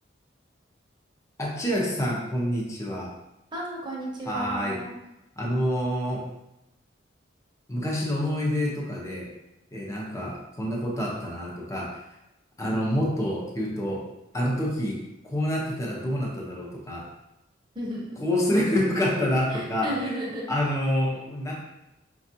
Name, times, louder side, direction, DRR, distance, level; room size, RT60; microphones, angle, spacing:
voice 1, 1.4-3.1 4.3-4.8 5.4-6.3 7.7-9.3 9.7-12.0 12.6-14.1 14.3-15.0 15.2-17.1 18.2-20.1 20.5-21.5, equal, 15° left, -4 dB, 0.7 m, -27 dB
voice 2, 3.5-4.9 17.7-18.2 19.5-20.5, right 1 dB, 25° right, -3 dB, 0.8 m, -33 dB
5.1 x 2.4 x 2.7 m, 0.91 s
head